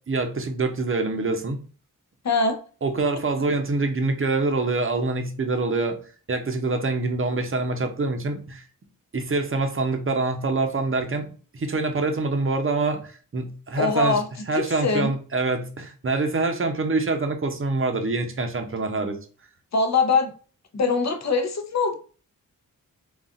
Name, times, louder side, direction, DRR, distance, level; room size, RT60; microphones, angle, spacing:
voice 1, 0.1-1.6 2.8-6.0 6.3-8.6 9.1-11.3 11.5-19.2, right 3 dB, 35° right, 5 dB, 0.7 m, -25 dB
voice 2, 2.2-2.6 13.8-14.2 14.5-15.1 19.7-20.3 20.7-21.9, left 4 dB, 50° left, 6 dB, 0.7 m, -22 dB
4.0 x 2.4 x 2.4 m, 0.39 s
cardioid pair, 60°, 35 cm